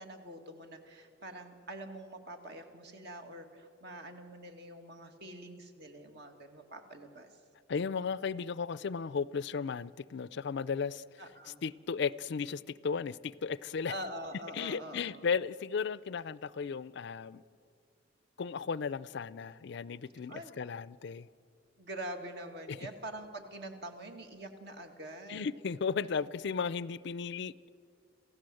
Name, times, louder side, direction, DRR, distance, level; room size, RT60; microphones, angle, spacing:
voice 1, 0.0-7.3 11.2-11.6 13.9-15.3 20.3-20.6 21.8-25.5, right 1 dB, 60° right, 2.2 m, -45 dB
voice 2, 7.7-11.0 11.6-13.9 14.5-17.4 18.4-21.3 22.7-22.8 25.3-27.7, left 5 dB, 60° left, 0.4 m, -35 dB
27.0 x 15.5 x 7.8 m
head